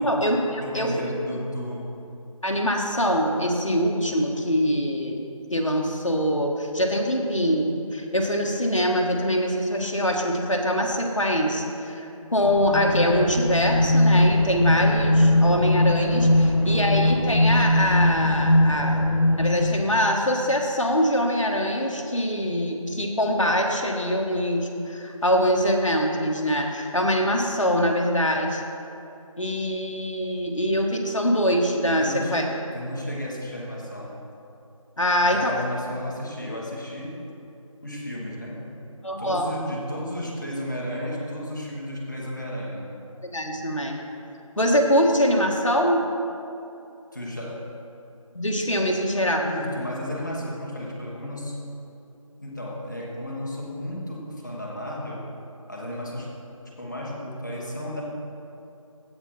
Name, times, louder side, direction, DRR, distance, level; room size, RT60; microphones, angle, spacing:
voice 1, 0.0-1.2 2.4-5.2 5.5-19.1 19.4-28.6 29.4-32.4 35.0-35.5 39.0-39.5 43.3-44.0 44.6-46.0 48.3-49.5, equal, 65° left, 1 dB, 1.4 m, -23 dB
voice 2, 0.6-1.9 16.4-16.8 32.0-34.1 35.3-37.2 37.8-38.7 39.2-43.0 47.1-47.7 49.4-51.6 52.4-55.3 55.7-56.3 56.6-58.0, equal, 35° left, -3 dB, 1.4 m, -33 dB
sound 1, 12.4-20.1, left 1 dB, 85° left, 2.1 m, -20 dB
15.5 x 5.3 x 4.3 m, 2.8 s
figure-of-eight pair, 170°, 18 cm